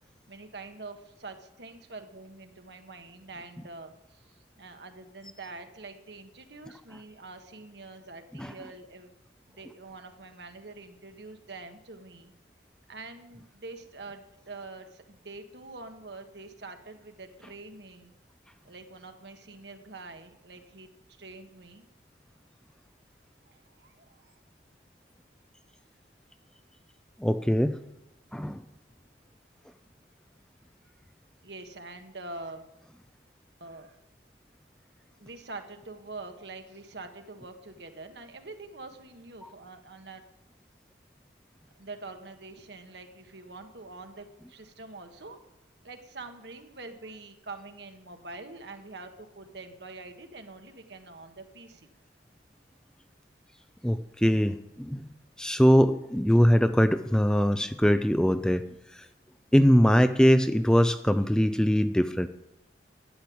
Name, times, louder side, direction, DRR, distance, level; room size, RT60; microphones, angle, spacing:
voice 1, 0.3-9.1 9.5-12.3 12.9-18.1 18.6-20.9 21.2-21.9 23.4-24.3 31.4-32.7 33.6-34.0 35.2-40.2 41.8-45.4 45.8-51.9, right 3 dB, 65° right, 6 dB, 1.4 m, -45 dB
voice 2, 27.2-27.8 28.3-28.6 39.4-39.5 53.8-55.1 55.4-58.6 58.9-59.1 59.5-62.3, equal, 5° left, 10 dB, 0.4 m, -22 dB
12.0 x 11.0 x 8.6 m, 0.92 s
head